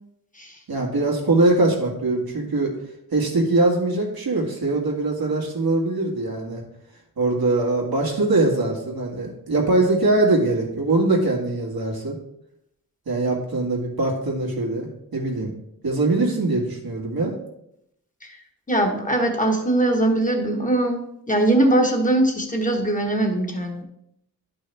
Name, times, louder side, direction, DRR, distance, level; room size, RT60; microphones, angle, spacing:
voice 1, 0.7-2.7 3.1-6.6 7.2-12.2 13.1-15.5 15.8-17.4, right 2 dB, 85° right, -1 dB, 2.0 m, -22 dB
voice 2, 18.7-23.8, right 1 dB, 20° left, 2 dB, 1.3 m, -21 dB
11.0 x 5.5 x 3.4 m, 0.78 s
wide cardioid pair, 100°, 35 cm